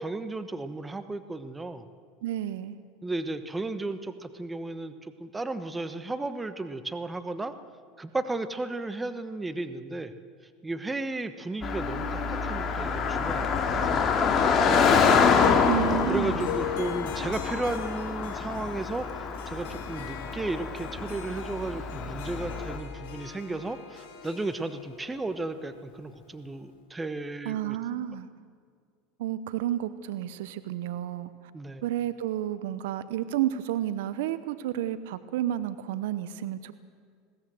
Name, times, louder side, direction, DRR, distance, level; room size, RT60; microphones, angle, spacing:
voice 1, 0.0-1.8 3.0-7.5 8.0-10.1 10.6-15.0 16.1-27.8 31.5-31.8, right 2 dB, 15° right, 11 dB, 1.2 m, -34 dB
voice 2, 2.2-2.8 15.7-16.5 27.4-28.3 29.2-31.3 31.8-36.8, right 12 dB, 75° right, 13 dB, 0.9 m, -31 dB
Car passing by, 11.6-22.8, left 5 dB, 35° left, 2.4 m, -26 dB
Harp, 15.4-26.6, left 10 dB, 70° left, 3.5 m, -40 dB
20.5 x 17.0 x 7.8 m, 2.1 s
hypercardioid pair, 95°, 0 cm